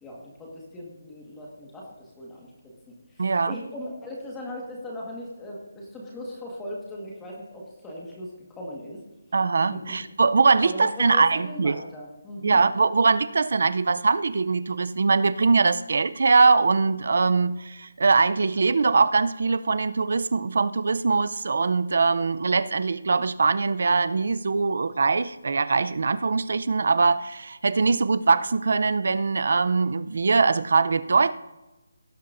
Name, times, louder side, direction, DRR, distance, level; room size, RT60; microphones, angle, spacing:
voice 1, 0.0-9.0 9.7-10.0 10.6-12.6, left 1 dB, 5° left, -3 dB, 1.5 m, -39 dB
voice 2, 3.2-3.6 9.3-11.8 12.4-31.3, right 4 dB, 45° right, 15 dB, 0.5 m, -22 dB
17.5 x 9.9 x 2.6 m, 1.0 s
hypercardioid pair, 180°, 0 cm